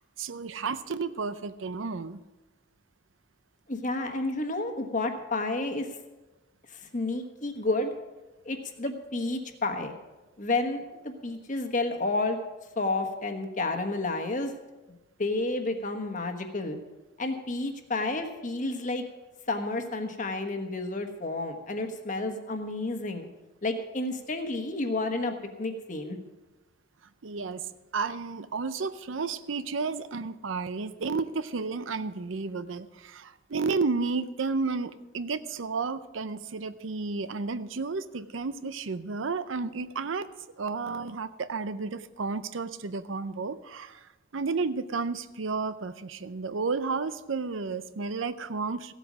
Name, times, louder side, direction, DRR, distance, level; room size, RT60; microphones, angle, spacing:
voice 1, 0.0-2.2 27.2-40.3 40.6-48.9, right 4 dB, 80° right, 14 dB, 0.6 m, -32 dB
voice 2, 3.7-5.9 6.7-7.9 8.4-9.9 10.4-12.4 12.8-14.5 15.2-16.8 17.2-19.0 19.5-23.3 23.6-26.2, left 2 dB, 40° left, 6 dB, 1.3 m, -30 dB
15.5 x 8.3 x 6.2 m, 1.1 s
head